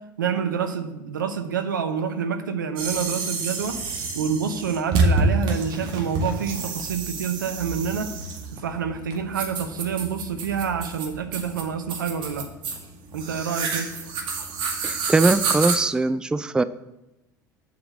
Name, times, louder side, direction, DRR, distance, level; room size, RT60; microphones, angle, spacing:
voice 1, 0.2-3.8 4.1-8.1 8.5-12.5 13.1-13.9, right 7 dB, 80° right, 7 dB, 0.8 m, -27 dB
sound 1, 2.8-15.8, right 3 dB, 50° right, 1.8 m, -28 dB
voice 2, 14.8-16.6, right 3 dB, 10° right, 14 dB, 0.4 m, -21 dB
7.7 x 5.0 x 7.3 m, 0.94 s
figure-of-eight pair, 70°, 10 cm